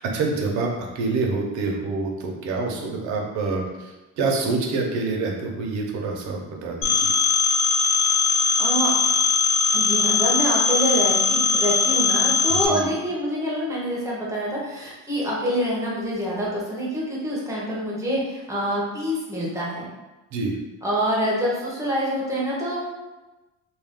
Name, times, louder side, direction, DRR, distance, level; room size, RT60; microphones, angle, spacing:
voice 1, 0.0-7.1 12.5-12.9 20.3-20.6, right 3 dB, 65° right, 0 dB, 0.7 m, -27 dB
Telephone, 6.8-12.7, left 4 dB, 65° left, 0.6 m, -20 dB
voice 2, 8.6-8.9 9.7-19.9 20.8-22.8, equal, 10° right, -5 dB, 0.6 m, -26 dB
2.4 x 2.2 x 3.4 m, 1.1 s
cardioid pair, 170°, 31 cm